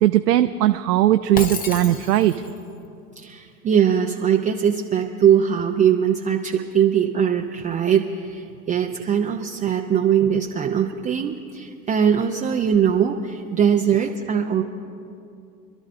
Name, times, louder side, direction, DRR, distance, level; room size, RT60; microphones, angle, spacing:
voice 1, 0.0-2.4, right 13 dB, 75° right, 8 dB, 0.6 m, -18 dB
Shatter, 1.4-2.6, left 4 dB, 15° left, 0.8 m, -31 dB
voice 2, 3.2-14.6, right 8 dB, 15° right, 3 dB, 0.4 m, -21 dB
27.0 x 12.5 x 2.6 m, 2.5 s
hypercardioid pair, 90°, 49 cm